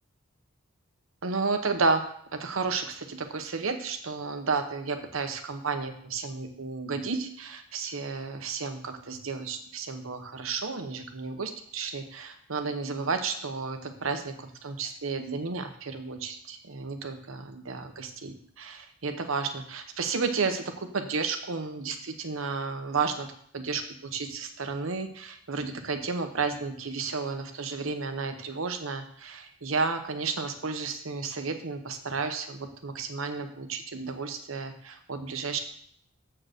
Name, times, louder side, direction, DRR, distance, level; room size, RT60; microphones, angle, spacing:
voice 1, 1.2-2.0 2.3-35.6, right 4 dB, 70° right, 7 dB, 0.9 m, -32 dB
7.5 x 4.7 x 6.5 m, 0.63 s
head